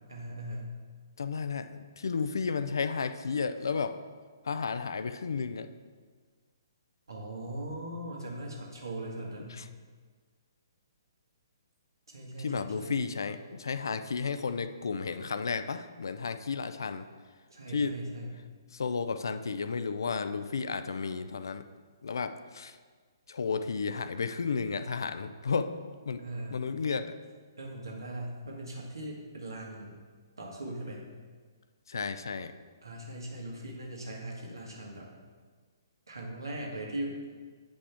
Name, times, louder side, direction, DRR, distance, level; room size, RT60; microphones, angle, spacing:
voice 1, 0.1-0.7 7.1-9.6 12.1-13.0 17.5-18.3 26.2-26.5 27.6-30.0 30.4-31.1 32.8-35.1 36.1-37.2, right 1 dB, 80° right, -2 dB, 1.7 m, -39 dB
voice 2, 1.2-4.0 4.4-5.7 9.5-9.7 12.4-17.1 17.7-18.0 18.7-21.6 22.0-22.8 23.3-25.8 26.1-26.2 26.5-27.2 31.9-32.5, left 5 dB, 70° left, 11 dB, 0.4 m, -33 dB
8.4 x 5.2 x 3.5 m, 1.5 s
figure-of-eight pair, 130°, 2 cm